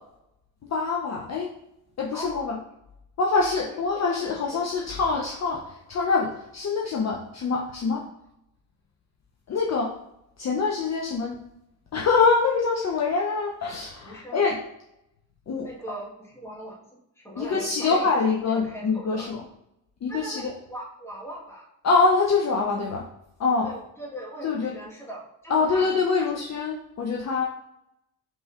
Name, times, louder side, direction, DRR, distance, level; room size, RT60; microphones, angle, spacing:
voice 1, 0.7-1.5 2.0-2.6 3.2-8.0 9.5-9.9 10.4-11.4 11.9-14.6 15.5-15.7 17.4-19.4 20.0-20.5 21.8-23.1 23.4-23.7 24.4-24.7 25.5-27.4, left 4 dB, 40° left, -1 dB, 0.6 m, -24 dB
voice 2, 2.1-2.4 3.6-4.7 7.9-8.1 14.0-14.5 15.6-16.9 17.1-18.0 18.4-19.4 20.1-20.4 20.7-21.7 23.6-25.9 26.2-26.6, right 1 dB, 5° left, -4 dB, 1.3 m, -40 dB
5.3 x 3.1 x 2.4 m, 0.82 s
cardioid pair, 90°, 45 cm